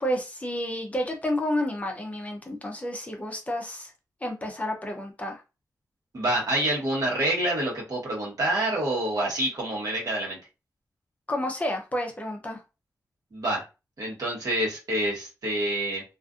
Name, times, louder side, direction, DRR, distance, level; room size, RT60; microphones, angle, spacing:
voice 1, 0.0-3.9 4.2-5.4 11.3-12.6, left 1 dB, 20° left, 2 dB, 0.5 m, -30 dB
voice 2, 6.1-10.4 13.3-13.6 14.0-16.0, right 1 dB, 60° right, -3 dB, 1.1 m, -27 dB
2.4 x 2.4 x 2.4 m, 0.29 s
wide cardioid pair, 135°, 7 cm